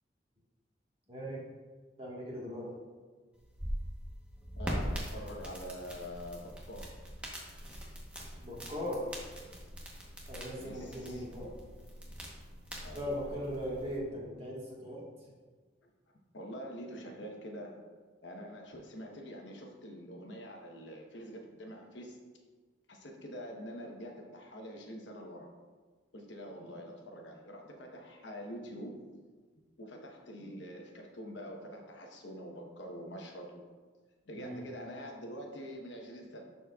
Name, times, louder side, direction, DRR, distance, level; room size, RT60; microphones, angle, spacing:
voice 1, 1.1-1.4 2.0-2.7 8.4-9.1 10.3-11.5 12.9-15.3 34.3-34.7, equal, 30° right, -4 dB, 1.5 m, -39 dB
sound 1, 3.3-14.0, equal, 5° right, 1.0 m, -42 dB
voice 2, 4.6-6.9 10.6-11.2 12.8-13.3 15.8-15.9 16.3-17.8 18.2-22.2 22.9-25.5 26.1-29.1 29.8-33.6 34.3-36.4, equal, 75° left, 1 dB, 1.0 m, -45 dB
11.0 x 4.3 x 2.4 m, 1.4 s
head